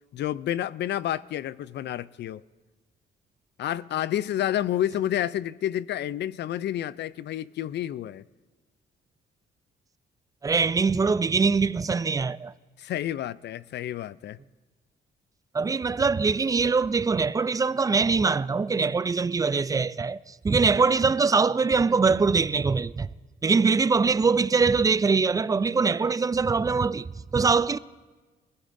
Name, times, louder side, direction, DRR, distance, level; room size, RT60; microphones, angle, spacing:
voice 1, 0.1-2.4 3.6-8.2 12.8-14.4, left 12 dB, 60° left, 0.4 m, -29 dB
voice 2, 10.4-12.5 15.5-23.1 23.4-27.8, right 4 dB, 15° right, 0.4 m, -23 dB
20.5 x 15.0 x 2.6 m
cardioid pair, 90°, 20 cm